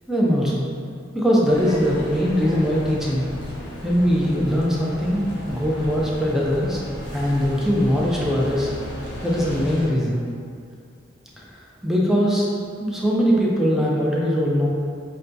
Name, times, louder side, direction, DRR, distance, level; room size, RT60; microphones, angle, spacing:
voice 1, 0.1-0.7 1.1-3.3 3.8-6.8 7.1-8.7 9.2-10.3 11.4-11.5 11.8-12.5 12.8-14.7, equal, 5° right, -5 dB, 0.5 m, -21 dB
sound 1, 1.5-9.9, left 1 dB, 90° left, 0.8 m, -35 dB
5.5 x 2.2 x 2.6 m, 2.3 s
head